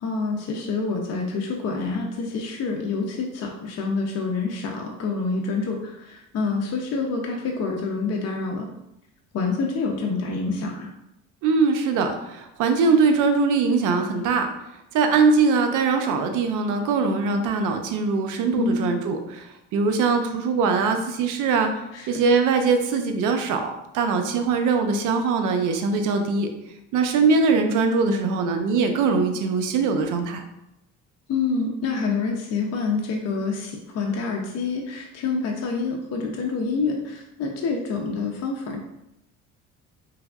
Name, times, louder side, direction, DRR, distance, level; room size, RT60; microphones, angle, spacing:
voice 1, 0.0-8.7 9.3-10.9 18.6-18.9 21.9-22.1 31.3-38.8, left 4 dB, 50° left, 1 dB, 0.6 m, -27 dB
voice 2, 11.4-14.5 14.9-21.7 22.1-26.5 26.9-30.4, right 4 dB, 70° right, 6 dB, 0.6 m, -22 dB
3.4 x 3.3 x 2.3 m, 0.86 s
supercardioid pair, 85°, 32 cm